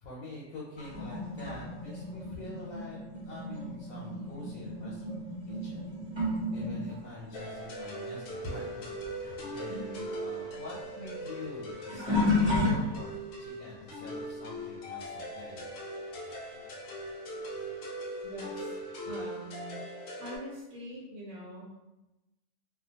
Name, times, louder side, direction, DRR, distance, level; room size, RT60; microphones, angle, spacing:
voice 1, 0.0-3.0 3.3-5.9 6.5-13.1 13.4-15.7, left 2 dB, 85° left, -4 dB, 1.0 m, -45 dB
sound 1, 0.8-8.8 9.0-13.4 14.0-14.3 16.5-16.6 17.5-17.6, left 2 dB, 25° right, 0.7 m, -34 dB
sound 2, 7.3-20.4, right 1 dB, 65° left, 0.7 m, -40 dB
voice 2, 9.7-10.0 18.2-18.8 19.0-19.8 20.2-21.8, equal, 85° right, -6 dB, 1.1 m, -43 dB
2.4 x 2.2 x 2.7 m, 0.99 s
omnidirectional pair, 1.4 m